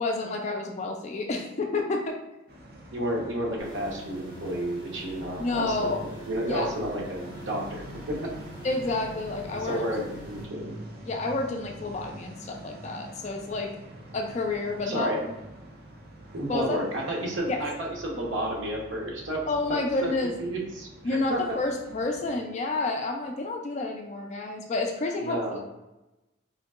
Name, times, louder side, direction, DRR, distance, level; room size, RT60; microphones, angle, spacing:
voice 1, 0.0-2.2 5.4-6.0 6.5-6.7 8.6-9.9 11.0-13.7 14.1-15.1 16.5-16.8 17.5-17.6 19.5-20.3 21.0-25.6, left 3 dB, 35° left, 2 dB, 0.3 m, -29 dB
sound 1, 2.5-22.4, right 1 dB, 50° right, 0.6 m, -45 dB
voice 2, 2.9-8.2 9.6-10.7 14.8-15.2 16.3-19.4 19.7-20.9 21.3-21.6 25.2-25.6, right 1 dB, 80° right, -1 dB, 0.9 m, -31 dB
sound 2, 3.6-10.4, left 1 dB, 25° right, 1.5 m, -46 dB
3.6 x 2.7 x 2.4 m, 1.0 s
head